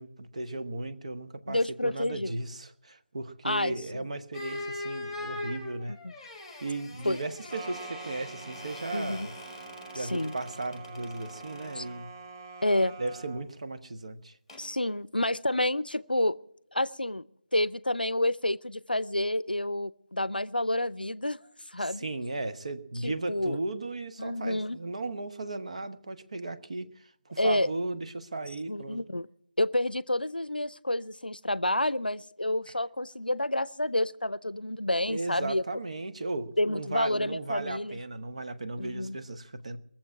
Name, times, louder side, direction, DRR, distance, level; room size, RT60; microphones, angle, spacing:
voice 1, 0.0-6.0 6.6-9.3 9.9-12.1 13.0-14.3 22.0-27.0 27.3-29.0 32.7-32.8 35.1-39.8, right 2 dB, 45° right, 9 dB, 1.1 m, -36 dB
voice 2, 1.5-2.3 3.4-4.1 5.9-6.1 7.1-7.2 8.9-9.3 9.9-10.3 11.8-11.9 12.6-13.0 14.6-16.4 16.7-17.2 17.5-21.4 21.7-22.1 23.0-23.6 24.2-24.8 27.4-27.7 28.7-29.3 29.6-35.6 36.6-38.0 38.8-39.2, left 1 dB, 80° left, 19 dB, 0.6 m, -29 dB
sound 1, 4.3-11.9 14.5-14.7, left 2 dB, ahead, 1.5 m, -42 dB
sound 2, 7.5-13.5, right 4 dB, 20° right, 0.6 m, -45 dB
21.5 x 7.4 x 8.7 m, 0.69 s
figure-of-eight pair, 160°, 5 cm